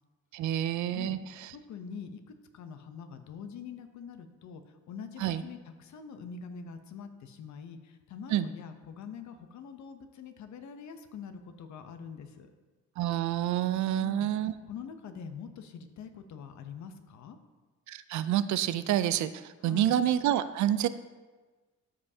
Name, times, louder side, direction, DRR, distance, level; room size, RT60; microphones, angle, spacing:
voice 1, 0.3-1.2 5.2-5.4 8.3-8.5 13.0-14.5 17.9-20.9, right 11 dB, 70° right, 13 dB, 0.5 m, -28 dB
voice 2, 1.5-12.5 14.0-17.4 19.6-20.0, left 6 dB, 70° left, 8 dB, 0.8 m, -44 dB
13.0 x 5.4 x 2.8 m, 1.3 s
cardioid pair, 90°, 30 cm